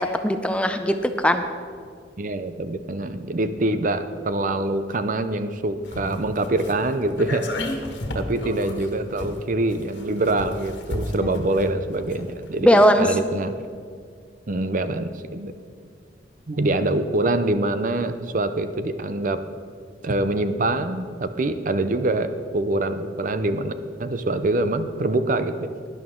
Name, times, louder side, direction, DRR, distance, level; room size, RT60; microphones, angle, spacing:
voice 1, 0.0-1.4 11.2-11.3 12.6-13.2, equal, 5° left, 7 dB, 0.5 m, -19 dB
voice 2, 2.2-7.5 8.1-13.5 14.5-15.5 16.5-19.4 20.0-23.7 24.0-25.7, right 2 dB, 45° right, 10 dB, 0.6 m, -25 dB
sound 1, 5.8-12.6 12.9-13.0, left 1 dB, 80° left, 1.6 m, -33 dB
17.0 x 11.0 x 3.8 m, 2.1 s
head